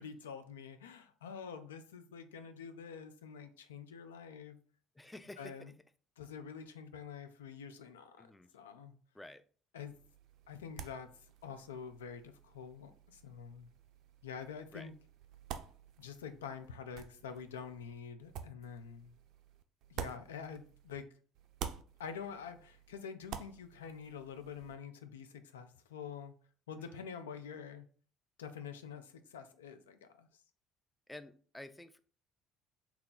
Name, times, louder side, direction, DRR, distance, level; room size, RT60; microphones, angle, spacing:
voice 1, 0.0-4.6 5.4-5.7 6.2-8.3 8.5-9.0 9.7-9.9 10.5-13.7 14.2-14.9 16.0-19.1 19.9-21.1 22.0-26.3 26.7-27.9 28.4-30.3, left 6 dB, 85° left, 0.3 m, -47 dB
voice 2, 4.9-5.7 8.2-8.5 9.1-9.4 14.7-14.9 26.8-27.0 31.1-32.0, left 1 dB, 10° left, 0.4 m, -51 dB
sound 1, 9.9-21.1 21.3-24.8, right 8 dB, 65° right, 0.3 m, -50 dB
2.8 x 2.2 x 3.8 m
hypercardioid pair, 60°, 0 cm